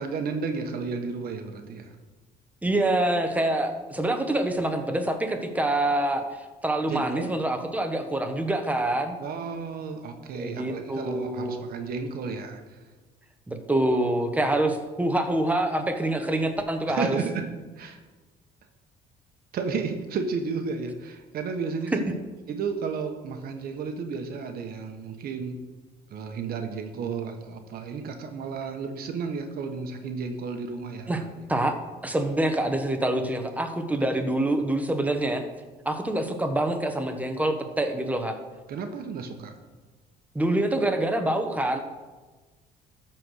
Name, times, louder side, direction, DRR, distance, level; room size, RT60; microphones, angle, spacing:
voice 1, 0.0-1.9 6.9-7.3 9.2-12.8 16.9-17.5 17.8-18.0 19.5-22.1 22.5-25.6 26.1-31.3 38.7-39.5, right 5 dB, 65° right, 5 dB, 1.3 m, -32 dB
voice 2, 2.6-9.2 10.3-11.7 13.5-17.2 31.1-31.2 31.5-31.8 32.0-35.4 35.8-38.4 40.3-41.8, right 1 dB, 10° right, 5 dB, 1.2 m, -26 dB
13.0 x 4.6 x 6.5 m, 1.3 s
cardioid pair, 110°, 17 cm